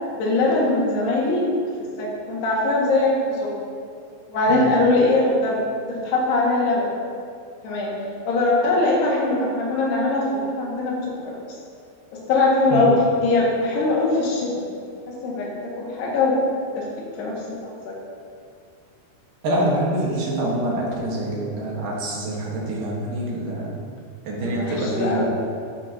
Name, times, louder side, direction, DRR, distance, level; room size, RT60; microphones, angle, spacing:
voice 1, 0.1-1.5 2.0-3.5 4.3-5.6 5.9-6.9 7.6-7.9 8.3-11.0 11.3-11.4 12.1-14.6 15.1-15.5 15.8-16.4 16.8-16.9 17.2-17.6 17.8-17.9 24.4-25.3, left 2 dB, 70° left, -4 dB, 3.8 m, -21 dB
voice 2, 19.4-23.8 24.2-25.3, right 1 dB, 60° right, -3 dB, 2.6 m, -25 dB
11.5 x 9.4 x 2.8 m, 2.2 s
omnidirectional pair, 5.0 m